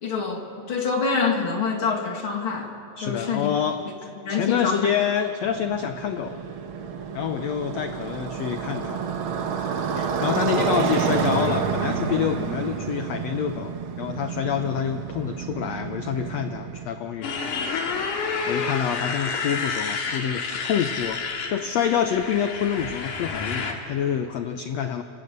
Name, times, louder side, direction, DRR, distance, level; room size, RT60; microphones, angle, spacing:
voice 1, 0.0-2.7 3.0-3.5 4.1-4.9, left 5 dB, 40° left, 2 dB, 2.6 m, -26 dB
voice 2, 3.0-6.4 7.1-9.0 10.0-17.3 18.5-21.2 21.5-25.0, left 8 dB, 80° left, 7 dB, 1.5 m, -27 dB
Motorcycle, 5.4-16.9, right 6 dB, 60° right, 1.4 m, -29 dB
Motorcycle 2, 17.2-23.7, left 5 dB, 60° left, 3.4 m, -29 dB
29.0 x 25.0 x 6.8 m, 2.9 s
omnidirectional pair, 4.1 m